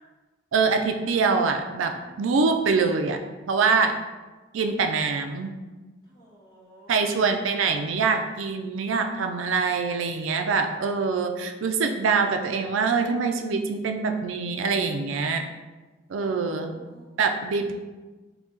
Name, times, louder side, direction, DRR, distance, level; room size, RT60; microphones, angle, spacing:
voice 1, 0.5-3.2 3.5-4.0 4.5-5.5 6.9-15.5 16.1-16.7 17.2-17.7, right 4 dB, 80° right, 5 dB, 0.4 m, -24 dB
voice 2, 2.0-2.8 6.1-7.0 16.2-17.1, equal, 25° left, -7 dB, 1.3 m, -52 dB
3.9 x 2.8 x 3.7 m, 1.2 s
head